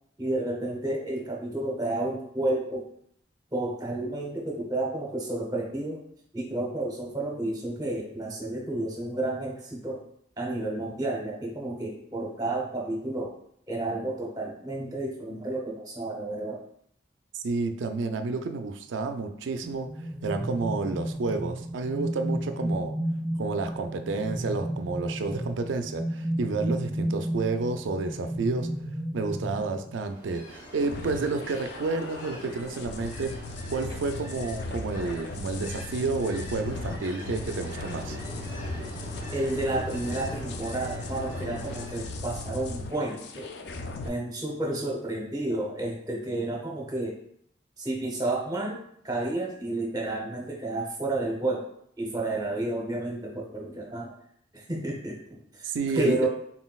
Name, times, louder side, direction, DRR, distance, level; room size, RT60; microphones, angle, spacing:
voice 1, 0.2-2.9 3.5-6.0 6.3-10.0 10.4-13.3 13.7-16.6 39.3-43.5 44.0-47.2 47.8-48.8 49.0-51.7 52.0-54.1 54.5-56.3, right 2 dB, 20° right, -1 dB, 0.7 m, -31 dB
voice 2, 17.3-22.9 23.4-28.7 29.1-33.3 33.7-38.2 55.6-56.2, right 3 dB, 85° right, 7 dB, 0.4 m, -30 dB
sound 1, 19.6-30.1, right 1 dB, ahead, 1.0 m, -32 dB
Ocean, 30.0-42.2, equal, 45° left, 1.3 m, -44 dB
sound 2, 30.8-44.1, left 2 dB, 65° left, 0.4 m, -37 dB
4.0 x 3.8 x 2.3 m, 0.69 s
head